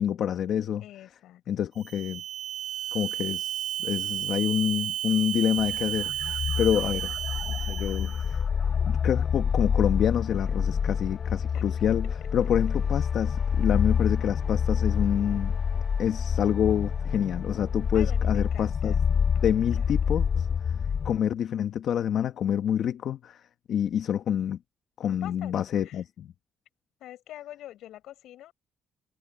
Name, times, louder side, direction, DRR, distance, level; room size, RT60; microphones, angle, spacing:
voice 1, 0.0-0.8 1.5-2.2 2.9-7.1 7.4-8.4 8.9-12.1 12.3-15.5 16.0-18.9 19.4-20.5 21.0-23.4 23.7-24.6 25.0-26.3, left 9 dB, 70° left, 1.2 m, -27 dB
voice 2, 0.8-1.4 6.5-7.1 11.5-11.6 17.9-19.1 19.3-20.2 25.1-25.5 25.8-26.0 27.0-28.5, left 13 dB, 85° left, 6.3 m, -46 dB
sound 1, 1.8-8.4, right 12 dB, 85° right, 3.1 m, -33 dB
sound 2, 5.6-21.2, left 7 dB, 50° left, 0.4 m, -27 dB
cardioid pair, 90°, 0 cm